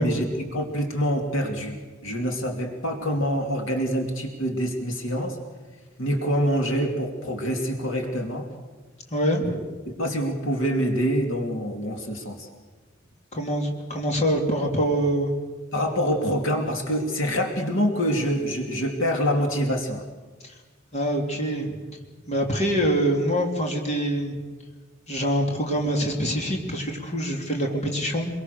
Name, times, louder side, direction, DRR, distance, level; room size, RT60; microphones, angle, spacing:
voice 1, 0.0-5.4 6.0-8.5 9.5-9.6 10.0-12.5 15.7-20.0, equal, 70° left, 3 dB, 2.9 m, -26 dB
voice 2, 9.1-9.6 13.3-15.3 20.4-20.5 20.9-21.8 22.3-24.4 25.1-28.3, equal, 35° left, 1 dB, 3.2 m, -25 dB
26.0 x 22.5 x 6.8 m, 1.3 s
head